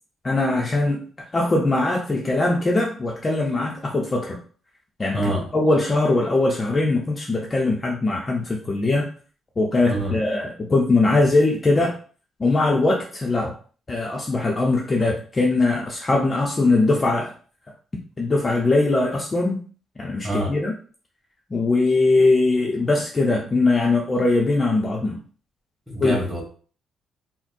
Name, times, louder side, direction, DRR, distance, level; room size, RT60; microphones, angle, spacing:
voice 1, 0.2-1.0 1.3-4.4 5.0-9.1 9.6-11.9 12.4-13.5 13.9-17.3 18.2-19.6 20.0-20.7 21.5-25.2 26.0-26.2, left 2 dB, 30° left, -1 dB, 0.6 m, -21 dB
voice 2, 5.1-5.5 9.9-10.2 20.2-20.5 25.9-26.4, right 1 dB, 10° right, -3 dB, 1.6 m, -25 dB
4.0 x 2.1 x 2.6 m, 0.41 s
cardioid pair, 90°, 0 cm